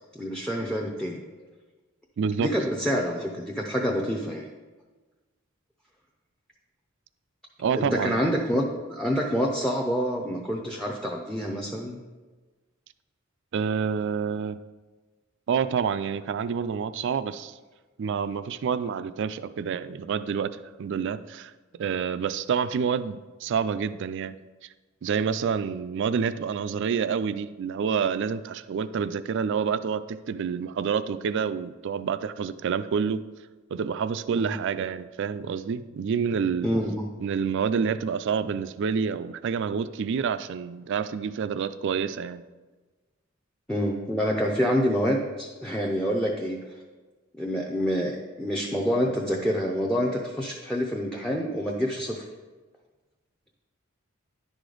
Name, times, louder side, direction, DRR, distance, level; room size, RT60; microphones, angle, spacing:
voice 1, 0.1-1.2 2.4-4.5 7.7-12.0 34.3-34.5 36.6-37.1 43.7-46.6 47.4-52.2, equal, 5° left, 0 dB, 0.6 m, -27 dB
voice 2, 2.2-2.5 7.6-8.2 13.5-14.6 15.5-17.6 18.0-21.5 21.8-24.4 25.0-33.2 33.7-36.7 37.2-42.4, right 6 dB, 60° right, 13 dB, 0.3 m, -28 dB
10.5 x 4.9 x 3.9 m, 1.3 s
head